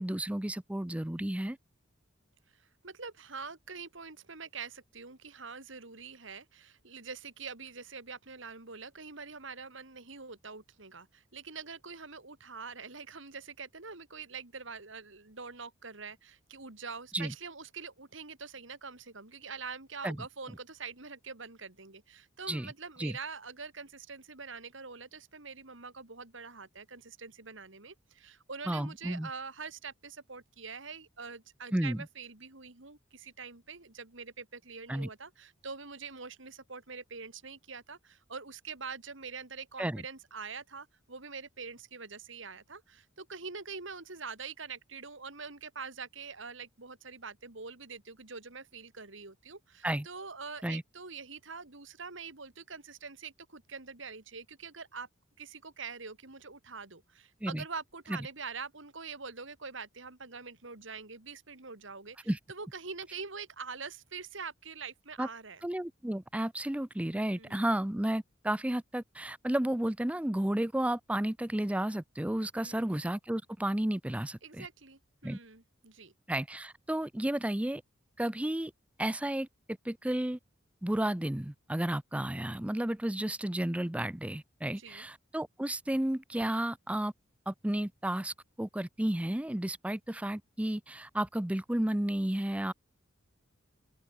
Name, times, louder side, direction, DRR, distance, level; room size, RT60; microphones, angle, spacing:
voice 1, 0.0-1.6 17.1-17.3 20.0-20.2 22.5-22.7 23.0-23.2 28.7-29.3 31.7-32.0 34.9-35.1 39.8-40.0 49.8-50.1 50.6-50.8 57.4-57.6 58.1-58.2 62.3-62.4 65.2-65.3 65.6-74.7 75.2-75.4 76.3-77.8 78.2-78.7 79.0-79.5 79.8-80.4 80.8-87.1 87.5-92.7, right 1 dB, 5° right, 0.5 m, -32 dB
voice 2, 2.5-55.1 55.4-65.6 67.3-67.6 72.5-72.9 74.4-76.1 84.6-85.1, right 5 dB, 65° right, 2.7 m, -45 dB
open air
head